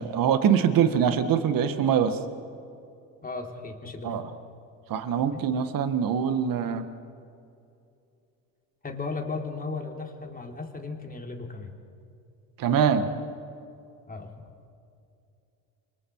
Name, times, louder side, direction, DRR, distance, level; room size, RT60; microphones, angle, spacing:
voice 1, 0.0-2.2 4.0-4.3 4.9-6.8 12.6-13.1, right 8 dB, 55° right, 9 dB, 1.8 m, -23 dB
voice 2, 3.2-4.2 5.3-5.5 8.8-11.7 14.1-14.4, left 3 dB, 20° left, 2 dB, 3.7 m, -36 dB
28.5 x 24.0 x 4.8 m, 2.6 s
supercardioid pair, 80°, 40 cm